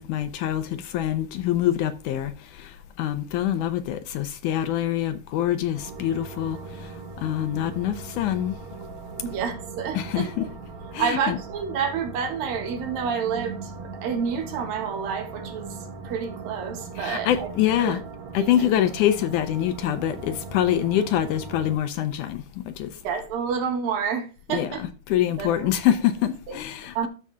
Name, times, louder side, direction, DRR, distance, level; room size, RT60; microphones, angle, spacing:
voice 1, 0.0-8.6 9.9-10.5 10.9-11.4 17.0-18.0 18.3-23.0 24.5-24.7 25.1-27.1, left 11 dB, 80° left, 2.0 m, -25 dB
sound 1, 5.7-21.8, right 4 dB, 60° right, 2.3 m, -39 dB
voice 2, 9.2-10.5 11.0-13.7 14.0-15.8 16.0-17.5 17.8-18.0 18.3-18.5 23.0-24.8 25.4-25.7 26.5-26.6 26.9-27.1, right 6 dB, 90° right, 3.4 m, -29 dB
12.5 x 5.6 x 2.4 m
omnidirectional pair, 4.0 m